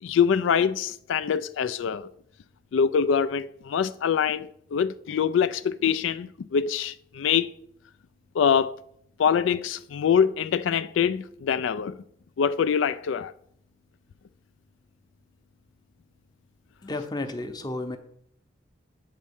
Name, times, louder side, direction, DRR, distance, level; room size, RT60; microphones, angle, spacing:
voice 1, 0.0-2.1 2.7-7.5 8.3-8.7 9.2-12.0 12.4-13.3, left 7 dB, 85° left, 0.3 m, -24 dB
voice 2, 16.8-18.0, left 2 dB, 20° left, 0.7 m, -32 dB
8.5 x 4.2 x 7.1 m
head